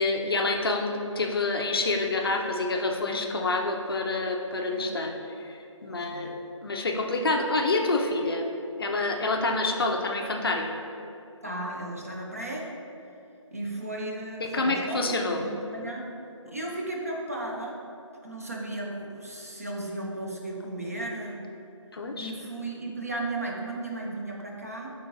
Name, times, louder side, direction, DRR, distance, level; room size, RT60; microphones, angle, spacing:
voice 1, 0.0-5.1 5.4-6.3 6.6-8.4 8.8-10.7 14.4-15.4 16.5-16.6 21.9-22.3, left 2 dB, 45° left, 2 dB, 0.4 m, -27 dB
voice 2, 5.9-6.4 9.8-9.9 11.4-12.7 13.5-16.1 16.5-17.8 18.2-21.4 22.2-24.9, right 2 dB, 30° right, -2 dB, 0.3 m, -35 dB
4.9 x 3.8 x 2.6 m, 2.8 s
figure-of-eight pair, 165°, 17 cm